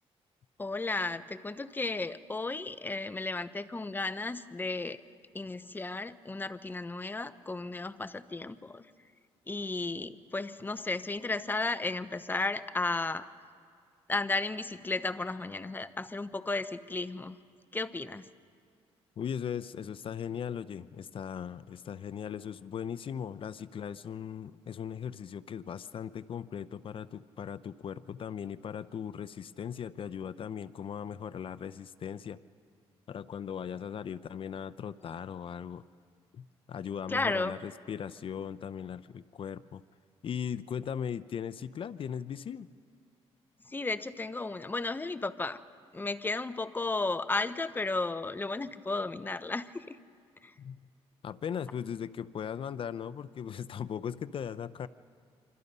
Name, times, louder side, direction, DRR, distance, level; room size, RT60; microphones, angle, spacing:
voice 1, 0.6-5.0 5.3-8.8 9.5-13.3 14.1-17.4 17.7-18.3 37.1-37.6 43.7-45.6 45.9-50.0 50.4-50.5, left 3 dB, 20° left, 13 dB, 0.8 m, -34 dB
voice 2, 19.2-32.4 33.1-35.8 36.3-39.8 40.2-42.7 50.6-50.9 51.2-54.9, left 8 dB, 55° left, 15 dB, 0.6 m, -38 dB
26.5 x 25.5 x 5.5 m, 2.2 s
cardioid pair, 90°, 11 cm